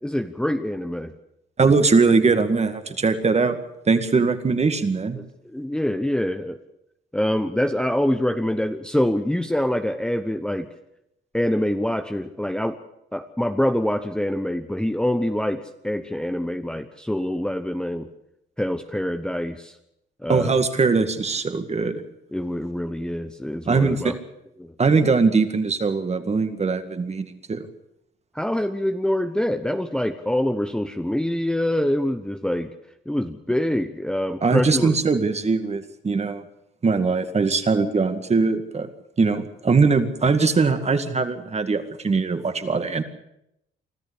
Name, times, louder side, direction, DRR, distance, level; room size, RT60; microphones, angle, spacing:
voice 1, 0.0-1.1 5.4-6.6 7.1-10.7 11.3-12.8 13.1-18.1 18.6-19.7 20.2-20.5 22.3-24.1 24.6-24.7 28.3-32.7 33.1-34.9, left 1 dB, 5° left, 7 dB, 1.0 m, -25 dB
voice 2, 1.6-3.6 3.9-5.2 20.3-22.0 23.7-24.2 24.8-27.7 34.4-36.4 36.8-38.9 39.2-43.0, right 4 dB, 35° right, 9 dB, 2.1 m, -21 dB
24.5 x 13.5 x 8.3 m, 0.82 s
cardioid pair, 90°, 20 cm